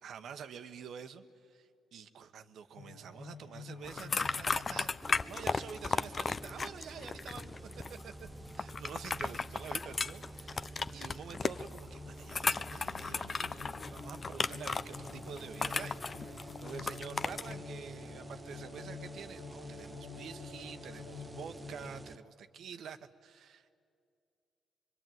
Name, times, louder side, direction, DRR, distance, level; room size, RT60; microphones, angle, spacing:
voice 1, 0.0-7.5 7.9-8.3 8.6-23.8, right 7 dB, 70° right, 9 dB, 1.1 m, -48 dB
sound 1, 2.8-10.9 11.2-22.1, left 4 dB, 90° left, 2.1 m, -50 dB
sound 2, 3.8-17.5, left 4 dB, 40° left, 0.6 m, -36 dB
sound 3, 5.0-22.2, right 2 dB, 25° right, 0.6 m, -50 dB
23.5 x 23.5 x 9.3 m, 2.3 s
cardioid pair, 70°, 0 cm